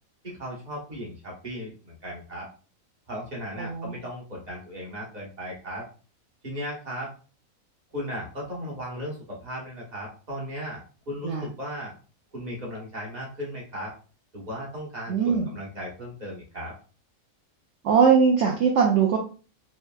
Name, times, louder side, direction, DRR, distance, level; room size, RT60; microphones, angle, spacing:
voice 1, 0.2-2.5 3.1-5.9 6.4-7.1 7.9-10.8 11.1-11.9 12.3-13.9 14.3-16.7, equal, 35° right, -3 dB, 1.2 m, -36 dB
voice 2, 3.6-4.0 11.2-11.5 15.1-15.5 17.8-19.2, right 6 dB, 65° right, 1 dB, 0.8 m, -21 dB
3.2 x 2.8 x 2.3 m, 0.37 s
omnidirectional pair, 1.4 m